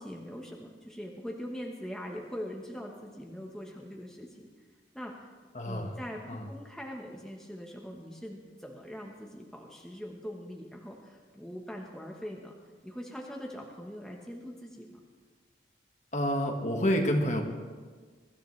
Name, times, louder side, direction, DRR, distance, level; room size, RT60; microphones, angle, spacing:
voice 1, 0.0-4.5 4.9-12.5 12.8-15.0, equal, 5° left, -1 dB, 1.0 m, -42 dB
voice 2, 5.5-6.0 6.3-6.5 16.1-17.4, equal, 40° left, 3 dB, 1.5 m, -28 dB
23.0 x 13.5 x 3.2 m, 1.5 s
head